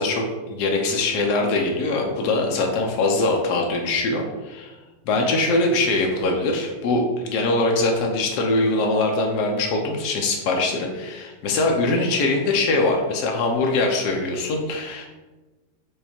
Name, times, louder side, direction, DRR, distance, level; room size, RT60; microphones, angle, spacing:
voice 1, 0.0-4.7 5.1-15.1, left 2 dB, 85° left, 1 dB, 1.2 m, -22 dB
5.1 x 2.3 x 4.3 m, 1.2 s
omnidirectional pair, 1.8 m